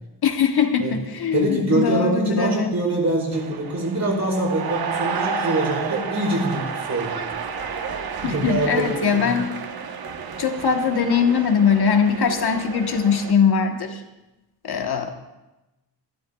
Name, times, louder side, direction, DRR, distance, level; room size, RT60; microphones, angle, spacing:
voice 1, 0.2-2.7 8.2-9.6 10.4-14.0 14.6-15.1, left 6 dB, 60° left, 5 dB, 1.2 m, -21 dB
voice 2, 1.3-7.2 8.2-9.3, right 1 dB, 40° right, -3 dB, 4.5 m, -24 dB
sound 1, 3.3-13.3, right 6 dB, 55° right, 1.0 m, -31 dB
25.5 x 12.5 x 2.3 m, 1.0 s
wide cardioid pair, 150°, 43 cm